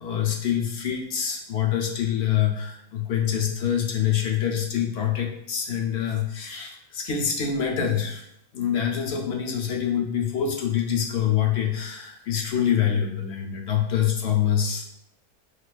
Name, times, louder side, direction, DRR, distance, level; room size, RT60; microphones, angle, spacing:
voice 1, 0.0-8.2 8.5-14.8, left 9 dB, 60° left, 0 dB, 0.8 m, -25 dB
6.5 x 2.4 x 2.2 m, 0.76 s
omnidirectional pair, 1.5 m